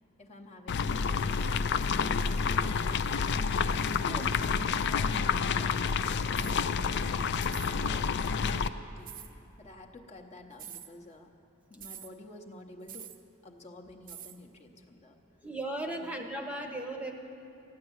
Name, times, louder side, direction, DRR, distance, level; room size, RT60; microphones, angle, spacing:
voice 1, 0.2-1.2 1.8-3.5 4.0-8.7 9.0-11.3 11.7-13.1 13.4-15.2 15.9-16.2, left 2 dB, 30° left, 1 dB, 0.9 m, -50 dB
sound 1, 0.7-8.7, left 5 dB, 55° left, 0.4 m, -29 dB
sound 2, 6.3-6.6 7.5-7.8 9.1-9.3 10.5-10.9 11.8-12.1 12.9-13.2 14.1-14.4, right 10 dB, 40° right, 0.6 m, -45 dB
voice 2, 15.4-17.1, right 1 dB, 5° right, 3 dB, 0.9 m, -36 dB
14.5 x 9.8 x 7.9 m, 2.7 s
head